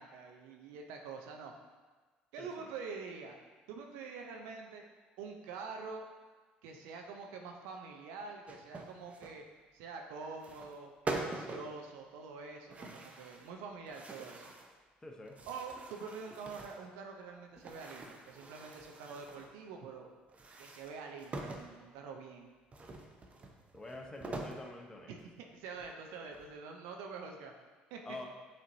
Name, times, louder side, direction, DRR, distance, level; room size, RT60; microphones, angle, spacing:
voice 1, 0.0-1.5 2.3-3.4 3.7-4.8 5.2-6.1 6.6-9.4 9.7-14.4 15.5-20.1 20.6-22.5 25.1-27.5 27.9-28.0, right 5 dB, 80° right, 2 dB, 0.5 m, -46 dB
voice 2, 2.4-2.7 15.0-15.4 23.7-25.1 28.0-28.3, left 2 dB, 15° left, 1 dB, 0.8 m, -47 dB
sound 1, 8.5-9.4 10.3-10.8 11.1-11.7 12.7-13.5 13.9-14.7 15.2-16.9 17.5-19.5 20.3-21.7 22.7-24.6 25.2-25.3 25.7-26.6, right 2 dB, 30° right, 0.6 m, -44 dB
7.1 x 2.8 x 2.6 m, 1.3 s
supercardioid pair, 70°, 4 cm